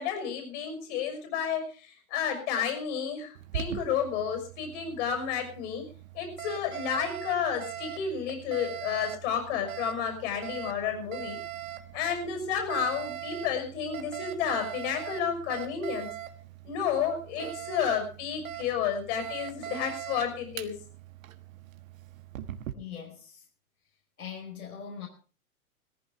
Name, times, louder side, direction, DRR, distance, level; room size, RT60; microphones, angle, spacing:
voice 1, 0.0-5.8 6.1-11.4 11.9-16.1 16.6-20.7, left 7 dB, 55° left, 6 dB, 6.1 m, -31 dB
Alarm, 3.4-22.7, right 11 dB, 65° right, 1.6 m, -41 dB
voice 2, 22.7-23.4 24.2-25.1, left 7 dB, 85° left, -1 dB, 5.1 m, -41 dB
18.0 x 15.0 x 3.5 m, 0.37 s
hypercardioid pair, 105°, 43 cm